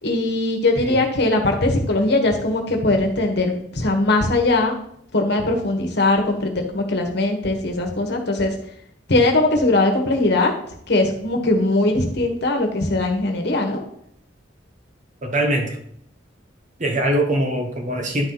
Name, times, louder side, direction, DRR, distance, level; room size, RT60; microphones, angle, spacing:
voice 1, 0.0-4.7 5.1-8.5 9.1-10.5 10.9-13.8, left 2 dB, 60° left, 3 dB, 1.4 m, -20 dB
voice 2, 15.2-15.8 16.8-18.3, right 1 dB, 40° right, 3 dB, 1.3 m, -22 dB
10.5 x 4.5 x 4.0 m, 0.68 s
head